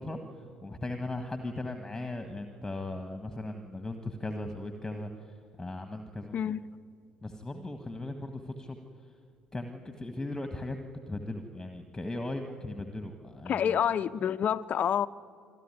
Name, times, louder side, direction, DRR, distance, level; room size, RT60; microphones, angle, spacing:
voice 1, 0.0-6.3 7.2-8.8 9.5-13.8, left 2 dB, 10° left, 1.6 m, -38 dB
voice 2, 13.5-15.1, left 9 dB, 45° left, 0.6 m, -28 dB
26.5 x 13.0 x 10.0 m
figure-of-eight pair, 55°, 4 cm